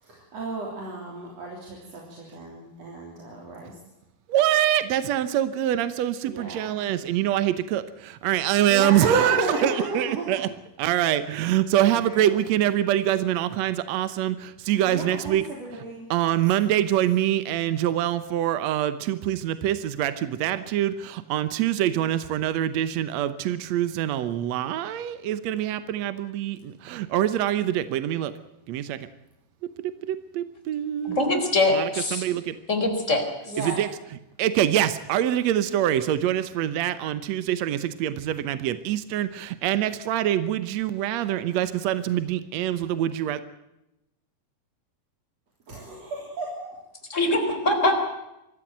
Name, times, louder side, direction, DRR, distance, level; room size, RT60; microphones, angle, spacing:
voice 1, 0.0-3.7 6.3-6.8 8.7-10.3 11.8-12.2 14.9-16.1 33.5-33.8 45.7-46.7, right 2 dB, 45° right, -1 dB, 4.3 m, -33 dB
voice 2, 4.3-10.5 10.8-15.4 15.7-15.8 16.1-28.3 28.7-29.1 29.8-31.3 31.7-32.6 33.6-33.9 34.4-43.4, right 12 dB, 75° right, 13 dB, 1.6 m, -25 dB
voice 3, 31.0-32.2 32.7-33.2 47.1-48.0, left 2 dB, 20° left, 4 dB, 4.1 m, -23 dB
24.0 x 15.0 x 9.2 m, 0.90 s
omnidirectional pair, 4.4 m